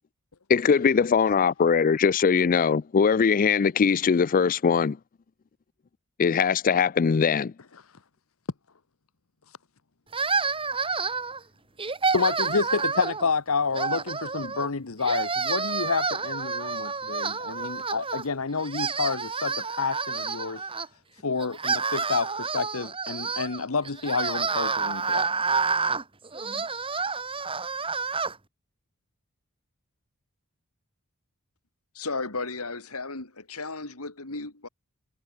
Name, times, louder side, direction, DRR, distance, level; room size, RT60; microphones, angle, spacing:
voice 1, 0.5-5.0 6.2-7.5, left 6 dB, 40° left, 0.4 m, -21 dB
sound 1, 10.1-11.4 11.8-13.3 13.7-14.7 15.0-18.3 18.6-20.9 21.4-28.3, right 4 dB, 25° right, 2.2 m, -29 dB
voice 2, 12.1-20.7 21.2-25.2, left 4 dB, 65° left, 1.0 m, -29 dB
voice 3, 31.9-34.7, left 3 dB, 85° left, 3.6 m, -34 dB
head